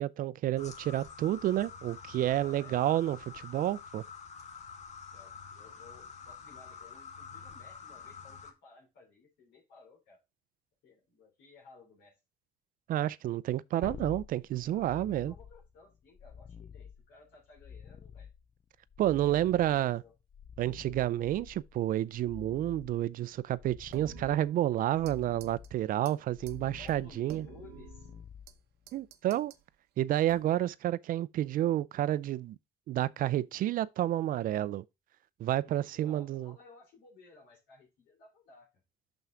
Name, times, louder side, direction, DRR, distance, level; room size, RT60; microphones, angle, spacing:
voice 1, 0.0-3.2 3.4-4.0 12.9-15.3 19.0-20.0 20.6-27.5 28.9-29.5 30.0-32.6 32.9-34.8 35.4-36.5, right 13 dB, 55° right, 0.4 m, -30 dB
sound 1, 0.6-8.5, left 6 dB, 45° left, 1.3 m, -48 dB
voice 2, 2.3-3.0 5.1-10.2 10.8-12.1 14.6-18.3 20.0-20.1 26.8-28.1 35.6-38.7, left 4 dB, 85° left, 3.2 m, -57 dB
sound 2, 13.8-29.1 32.3-32.4, left 7 dB, 25° left, 0.4 m, -50 dB
sound 3, 23.9-25.2 25.4-25.7 26.1-26.2 26.5-26.6 26.9-28.6 28.9-29.6 30.3-30.7, right 11 dB, 80° right, 0.7 m, -51 dB
6.1 x 5.7 x 3.8 m
cardioid pair, 110°, 17 cm